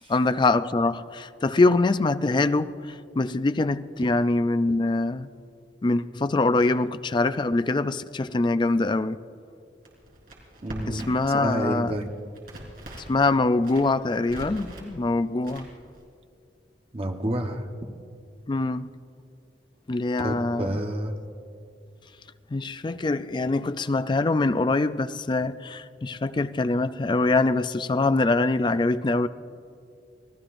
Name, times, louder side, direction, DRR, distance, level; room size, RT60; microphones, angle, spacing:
voice 1, 0.1-5.3 5.8-9.2 10.9-11.9 13.1-15.7 18.5-18.9 19.9-20.8 22.5-29.3, left 2 dB, 25° left, 0.4 m, -24 dB
Crackle, 9.8-11.3 11.6-13.2 13.6-14.9 15.4-16.0, right 1 dB, 55° right, 4.0 m, -42 dB
voice 2, 10.6-11.1 11.4-12.1 16.9-17.7 20.2-21.1, right 1 dB, 35° right, 1.1 m, -29 dB
29.0 x 19.0 x 2.6 m
head